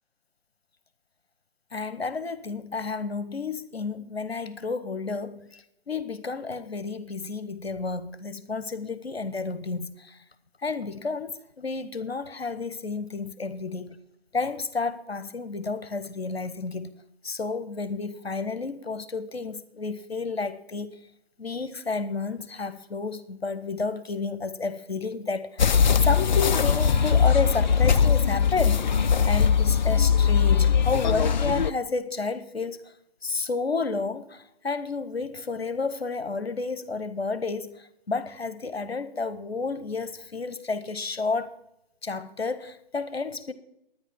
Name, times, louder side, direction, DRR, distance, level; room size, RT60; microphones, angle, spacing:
voice 1, 1.7-10.2 10.6-14.0 14.3-16.9 17.2-21.0 21.4-28.9 29.3-32.9 33.2-41.5 42.0-43.5, left 4 dB, 80° left, 1.0 m, -31 dB
sound 1, 25.6-31.7, left 6 dB, 45° left, 0.5 m, -21 dB
11.0 x 9.9 x 5.8 m
figure-of-eight pair, 140°, 31 cm